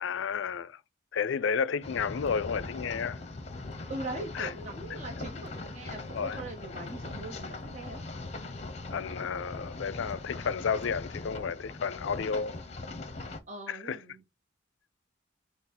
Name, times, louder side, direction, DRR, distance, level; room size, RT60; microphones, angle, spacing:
voice 1, 0.0-0.8 1.1-3.2 4.3-4.5 6.1-6.4 8.9-12.6 13.7-14.0, left 6 dB, 80° left, 0.4 m, -32 dB
sound 1, 1.8-13.4, left 2 dB, 35° left, 0.7 m, -40 dB
voice 2, 3.9-8.1 13.5-14.2, right 2 dB, 35° right, 0.8 m, -41 dB
5.9 x 2.0 x 4.1 m
head